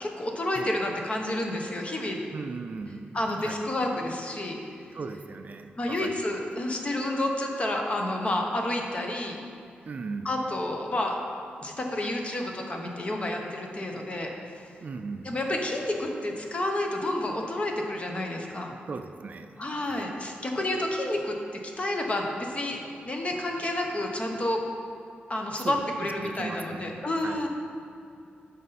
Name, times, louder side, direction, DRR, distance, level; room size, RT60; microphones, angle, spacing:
voice 1, 0.0-2.2 3.1-4.6 5.8-9.4 10.2-11.2 11.6-14.7 15.2-18.7 19.6-21.4 21.8-22.8 23.1-24.6 25.3-27.5, left 1 dB, 35° left, 1 dB, 1.0 m, -30 dB
voice 2, 2.3-3.6 4.9-6.2 9.9-10.3 14.8-15.4 18.9-20.1 25.6-27.5, right 4 dB, 45° right, 7 dB, 0.4 m, -38 dB
9.2 x 5.5 x 4.2 m, 2.6 s
wide cardioid pair, 105°, 4 cm